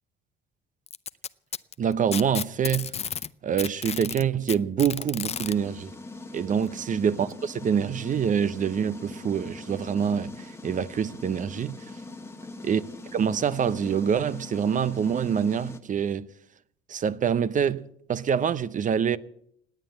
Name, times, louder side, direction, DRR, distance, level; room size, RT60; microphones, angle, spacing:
Packing tape duct tape, 0.9-3.3 3.6-5.5 6.7-6.8 7.3-7.4 8.2-8.3, left 7 dB, 30° left, 0.6 m, -32 dB
voice 1, 1.8-3.1 3.4-5.9 6.3-11.7 12.7-12.8 13.1-16.3 16.9-19.2, right 7 dB, 40° right, 0.7 m, -26 dB
sound 1, 5.3-15.8, left 2 dB, 10° left, 1.4 m, -42 dB
18.0 x 9.6 x 7.8 m
cardioid pair, 95°, 20 cm